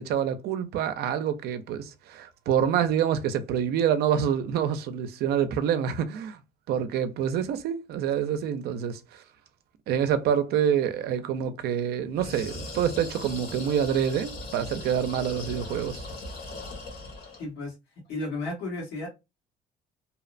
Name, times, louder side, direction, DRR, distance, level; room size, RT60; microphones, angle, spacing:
voice 1, 0.0-6.4 6.7-9.2 9.9-16.1, right 8 dB, 70° right, 0.4 m, -27 dB
sound 1, 12.1-17.5, left 2 dB, 65° left, 1.3 m, -39 dB
voice 2, 17.4-17.7 18.1-19.1, left 2 dB, 90° left, 1.5 m, -33 dB
2.8 x 2.0 x 2.4 m
cardioid pair, 110°, 17 cm